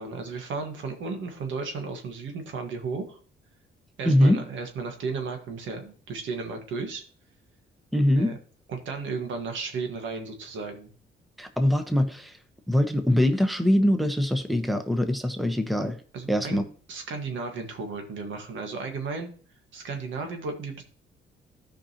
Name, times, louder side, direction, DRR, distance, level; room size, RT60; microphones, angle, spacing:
voice 1, 0.0-3.2 4.0-7.0 8.1-8.4 8.7-10.9 16.1-16.6 16.9-19.3 19.7-20.8, right 4 dB, 75° right, 5 dB, 1.6 m, -34 dB
voice 2, 4.0-4.4 7.9-8.4 11.4-12.4 12.7-16.0 16.3-16.6, left 1 dB, ahead, 6 dB, 1.0 m, -23 dB
13.5 x 5.1 x 2.9 m, 0.43 s
cardioid pair, 90°, 20 cm